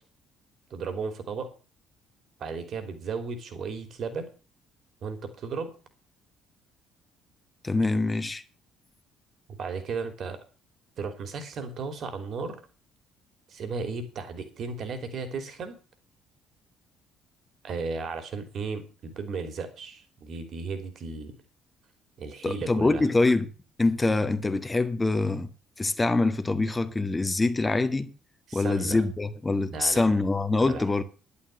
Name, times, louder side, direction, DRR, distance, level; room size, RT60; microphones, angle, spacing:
voice 1, 0.7-1.5 2.4-4.3 5.0-5.7 9.5-10.4 11.0-12.6 13.5-15.8 17.6-21.3 22.2-23.1 28.5-29.0 29.7-30.1 30.6-30.8, right 4 dB, 50° right, 3.2 m, -35 dB
voice 2, 7.6-8.4 22.4-23.5 23.8-25.5 25.8-28.1 28.5-31.0, left 2 dB, 20° left, 1.7 m, -24 dB
11.5 x 8.8 x 6.8 m
figure-of-eight pair, 50°, 0 cm